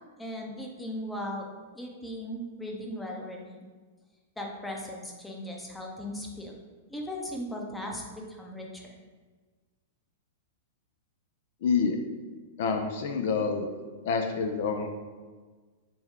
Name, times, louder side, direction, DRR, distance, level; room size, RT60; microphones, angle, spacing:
voice 1, 0.2-1.5 1.7-3.7 4.4-6.6 6.9-8.8, equal, 5° left, 0 dB, 0.6 m, -37 dB
voice 2, 11.6-12.0 12.6-13.7 14.0-14.9, left 5 dB, 60° left, 4 dB, 0.4 m, -27 dB
4.2 x 2.2 x 3.6 m, 1.4 s
hypercardioid pair, 120°, 0 cm